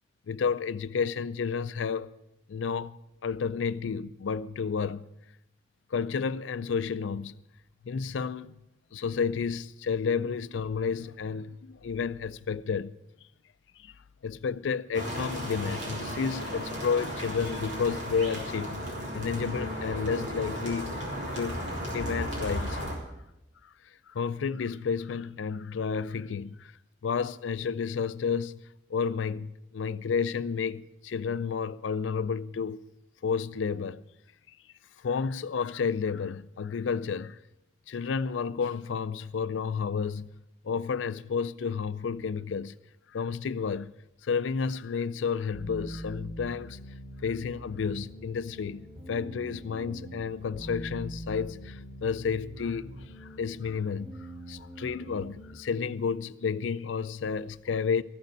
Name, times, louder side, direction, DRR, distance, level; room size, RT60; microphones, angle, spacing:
voice 1, 0.3-2.1 2.5-3.0 3.2-5.0 5.9-7.4 7.8-8.5 8.9-12.9 13.8-14.0 14.2-18.8 19.1-21.0 21.3-21.6 21.9-22.8 23.6-23.7 24.1-26.7 27.0-32.9 33.2-34.0 35.0-37.4 37.9-40.3 40.6-42.7 43.1-43.9 44.2-46.8 47.2-58.0, left 6 dB, 90° left, 0.4 m, -31 dB
sound 1, 14.9-22.9, equal, 75° right, 3.7 m, -35 dB
sound 2, 45.5-55.5, right 1 dB, 30° right, 2.6 m, -43 dB
14.5 x 6.6 x 9.2 m
head